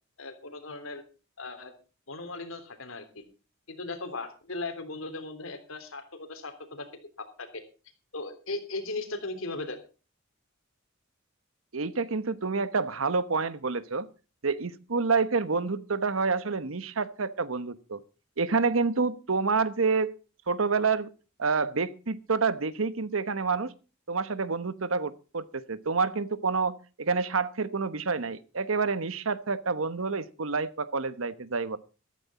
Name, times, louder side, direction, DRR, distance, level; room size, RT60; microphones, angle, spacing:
voice 1, 0.2-1.0 1.4-1.7 2.1-3.2 3.7-7.6 8.1-9.8, left 2 dB, 85° left, 7 dB, 3.4 m, -38 dB
voice 2, 11.7-14.1 14.4-18.0 18.4-20.1 20.5-21.1 21.4-23.7 24.1-31.8, right 4 dB, 85° right, 14 dB, 1.1 m, -28 dB
14.0 x 13.5 x 4.2 m, 0.33 s
head